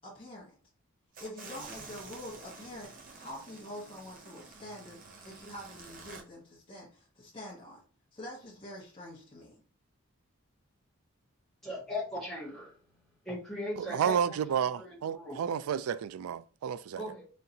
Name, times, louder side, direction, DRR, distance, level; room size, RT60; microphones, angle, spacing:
voice 1, 0.0-0.5 1.2-7.8 8.1-9.6, left 1 dB, 25° left, 1.1 m, -46 dB
sound 1, 1.1-6.2, right 3 dB, 40° right, 0.7 m, -49 dB
voice 2, 11.6-12.7 13.2-14.4 15.1-15.4 17.0-17.2, left 1 dB, ahead, 1.5 m, -38 dB
voice 3, 13.8-17.0, right 8 dB, 85° right, 0.3 m, -31 dB
4.2 x 3.7 x 2.7 m
head